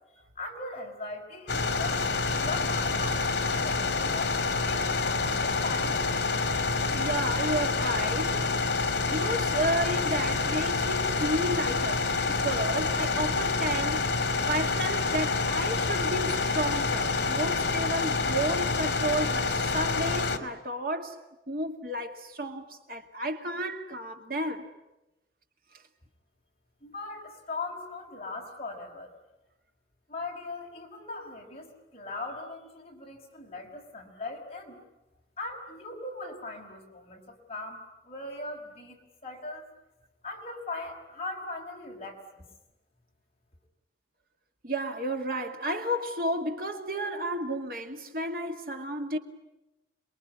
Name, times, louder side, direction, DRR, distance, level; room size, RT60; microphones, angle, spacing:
voice 1, 0.1-2.1 2.4-4.4 4.7-6.1 26.8-29.1 30.1-34.8 35.4-39.7 40.2-42.4, left 2 dB, 35° left, 5.3 m, -39 dB
sound 1, 1.5-20.4, left 4 dB, 70° left, 2.4 m, -27 dB
voice 2, 6.8-8.5 9.1-14.1 14.5-21.2 21.5-24.7 44.6-49.2, right 1 dB, 50° right, 2.2 m, -32 dB
28.0 x 22.0 x 9.7 m
head